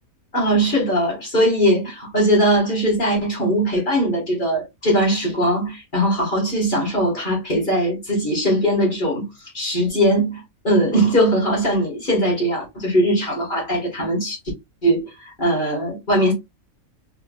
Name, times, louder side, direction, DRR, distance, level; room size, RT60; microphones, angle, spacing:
voice 1, 0.3-9.3 9.5-14.4 14.8-15.0 15.4-16.3, equal, 35° left, 1.9 m, -20 dB
3.6 x 3.4 x 2.4 m
omnidirectional pair, 1.5 m